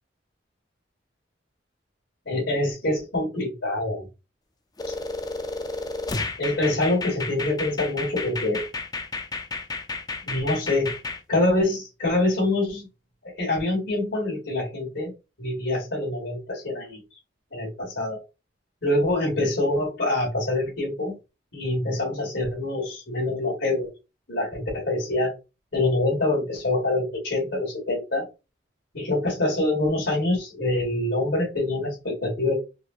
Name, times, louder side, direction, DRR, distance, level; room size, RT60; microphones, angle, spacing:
voice 1, 2.3-4.1 6.4-8.6 10.3-10.9 11.3-12.9 13.2-15.1 15.4-17.0 17.5-18.2 18.8-21.2 21.5-23.9 24.3-25.3 25.7-28.3 28.9-32.5, left 2 dB, 75° left, -5 dB, 2.3 m, -25 dB
sound 1, 4.8-11.2, left 3 dB, 20° left, 0.4 m, -32 dB
4.6 x 2.8 x 2.5 m, 0.28 s
head